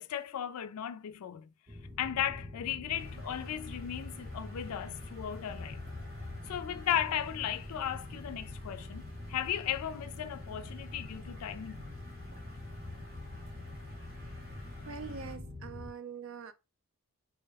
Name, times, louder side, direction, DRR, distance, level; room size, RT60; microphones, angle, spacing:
voice 1, 0.0-1.5 2.0-5.8 6.5-11.9, left 10 dB, 80° left, 0.4 m, -36 dB
sound 1, 1.7-15.9, left 2 dB, 25° right, 1.2 m, -45 dB
sound 2, 2.9-15.4, equal, 40° right, 1.7 m, -52 dB
voice 2, 14.9-16.5, right 5 dB, 60° right, 0.5 m, -43 dB
4.0 x 2.1 x 3.3 m
head